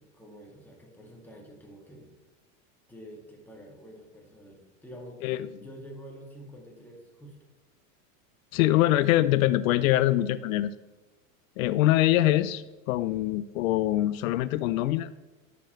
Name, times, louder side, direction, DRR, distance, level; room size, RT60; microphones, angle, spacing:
voice 1, 0.0-2.1 2.9-7.4, equal, 5° left, -2 dB, 2.0 m, -48 dB
voice 2, 8.5-10.7 11.6-15.1, left 14 dB, 80° left, 14 dB, 0.5 m, -24 dB
10.5 x 6.9 x 3.1 m, 1.2 s
supercardioid pair, 125°, 41 cm